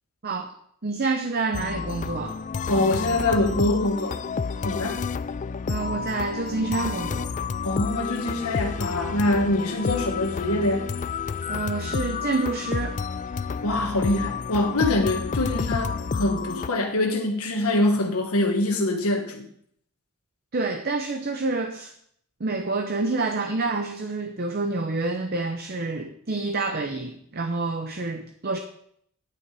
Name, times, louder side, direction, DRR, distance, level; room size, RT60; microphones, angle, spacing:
voice 1, 0.2-0.5 0.8-2.4 5.7-7.3 11.5-13.0 20.5-21.9 22.4-28.6, right 3 dB, 45° right, 7 dB, 0.8 m, -28 dB
sound 1, 1.5-16.7, left 5 dB, 35° left, 0.3 m, -30 dB
voice 2, 2.7-4.2 4.6-5.0 7.6-10.9 13.6-19.5, left 2 dB, 80° left, 2 dB, 1.3 m, -24 dB
10.0 x 9.1 x 4.8 m, 0.67 s
head